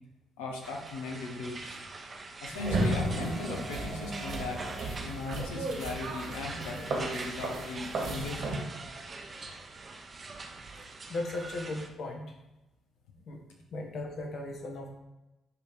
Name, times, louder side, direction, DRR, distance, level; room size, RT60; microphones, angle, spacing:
voice 1, 0.4-1.8 2.4-4.7 5.0-8.6, left 3 dB, 80° left, 0 dB, 1.2 m, -38 dB
sound 1, 0.6-11.9, right 3 dB, 40° right, 1.0 m, -44 dB
sound 2, 2.5-8.6, right 2 dB, 60° right, 2.1 m, -34 dB
voice 2, 11.1-12.3 13.2-13.4 13.7-14.9, left 2 dB, 60° left, 2 dB, 1.4 m, -37 dB
10.5 x 3.5 x 4.7 m, 0.98 s
hypercardioid pair, 45°, 0 cm